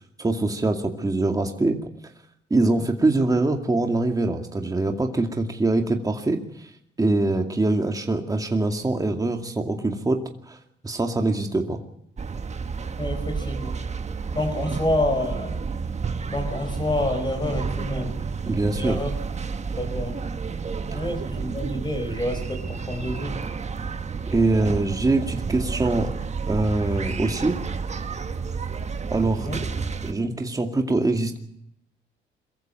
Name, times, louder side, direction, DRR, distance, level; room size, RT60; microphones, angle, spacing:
voice 1, 0.2-1.8 2.5-6.7 7.0-10.2 10.5-10.6 10.8-11.8 18.5-19.0 20.9-21.0 23.5-23.6 24.3-26.1 26.5-27.6 29.1-29.5 30.0-31.4, right 2 dB, 20° right, 3 dB, 2.3 m, -23 dB
sound 1, 12.2-30.1, right 5 dB, 35° right, 1.5 m, -30 dB
voice 2, 13.0-13.7 14.3-15.6 16.3-18.2 18.7-19.1 19.8-20.2 20.9-23.4 29.5-29.6, left 1 dB, 20° left, 5 dB, 5.1 m, -28 dB
23.0 x 15.0 x 9.2 m, 0.76 s
cardioid pair, 90°, 20 cm